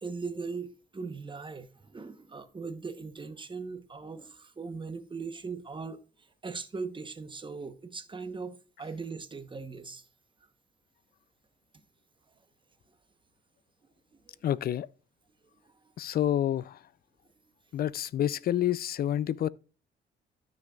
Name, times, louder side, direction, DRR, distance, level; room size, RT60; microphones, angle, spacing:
voice 1, 0.0-6.0 6.4-10.1 15.6-15.7, right 4 dB, 25° right, 1.0 m, -39 dB
voice 2, 14.4-14.9 16.0-16.8 17.7-19.5, left 11 dB, 50° left, 0.4 m, -28 dB
12.5 x 6.4 x 2.4 m
cardioid pair, 90°, 20 cm